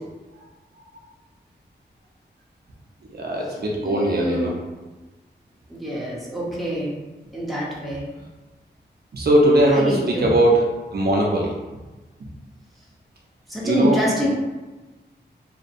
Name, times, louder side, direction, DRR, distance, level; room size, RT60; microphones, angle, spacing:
voice 1, 3.1-4.5 9.1-10.7 10.9-11.5 13.6-14.3, right 1 dB, 60° right, -2 dB, 0.5 m, -20 dB
voice 2, 3.8-4.5 5.7-6.9 7.3-8.1 9.7-10.2 13.5-14.3, equal, ahead, -6 dB, 0.7 m, -26 dB
2.6 x 2.1 x 2.4 m, 1.2 s
wide cardioid pair, 85°, 19 cm